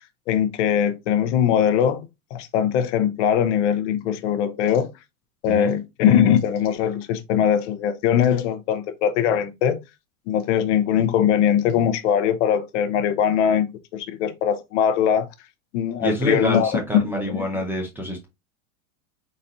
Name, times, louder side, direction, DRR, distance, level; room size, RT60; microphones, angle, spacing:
voice 1, 0.3-2.1 2.3-4.9 5.4-9.8 10.3-13.7 13.9-15.3 15.7-17.4, left 9 dB, 55° left, 0.7 m, -21 dB
voice 2, 16.0-18.3, equal, 5° right, 0.5 m, -26 dB
4.1 x 3.9 x 2.7 m
supercardioid pair, 145°, 43 cm